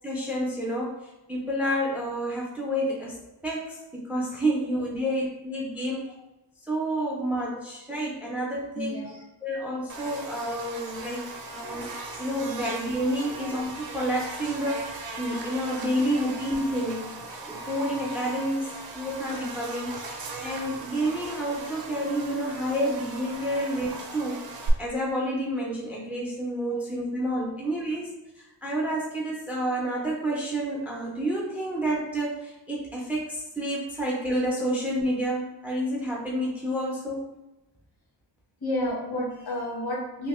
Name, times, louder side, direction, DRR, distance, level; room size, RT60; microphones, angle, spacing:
voice 1, 0.0-3.1 3.4-6.1 6.7-9.0 9.4-11.2 11.5-11.9 12.2-17.1 17.5-24.4 24.8-37.2, equal, 5° right, -3 dB, 0.4 m, -29 dB
voice 2, 8.7-9.2 13.2-13.3 16.1-16.2 24.1-24.2 26.7-26.8 27.4-27.5 38.6-40.3, left 1 dB, 65° left, -5 dB, 1.3 m, -31 dB
Buzz, 9.9-24.7, right 2 dB, 60° right, 0.5 m, -38 dB
3.0 x 2.5 x 2.9 m, 0.95 s
wide cardioid pair, 175°, 42 cm